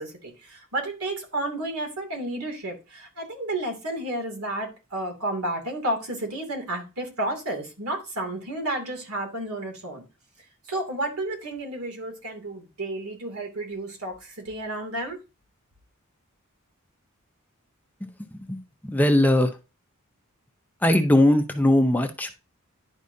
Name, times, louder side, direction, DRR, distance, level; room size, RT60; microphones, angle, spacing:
voice 1, 0.0-10.0 10.7-15.2, right 1 dB, 80° right, 2.7 m, -31 dB
voice 2, 18.9-19.5 20.8-22.4, left 1 dB, 10° left, 0.7 m, -19 dB
11.0 x 4.9 x 2.7 m
head